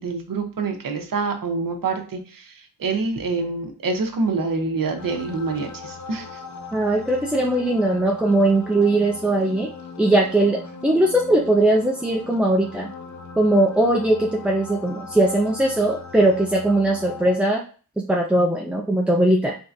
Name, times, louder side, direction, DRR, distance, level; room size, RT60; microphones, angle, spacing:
voice 1, 0.0-6.4, right 4 dB, 55° right, 4 dB, 0.8 m, -26 dB
sound 1, 5.0-17.4, left 4 dB, 45° left, 0.5 m, -39 dB
voice 2, 6.7-9.7 10.0-12.9 13.4-17.6 18.0-19.6, right 1 dB, 5° right, 0 dB, 0.4 m, -20 dB
3.7 x 3.4 x 2.6 m, 0.38 s
wide cardioid pair, 80°, 41 cm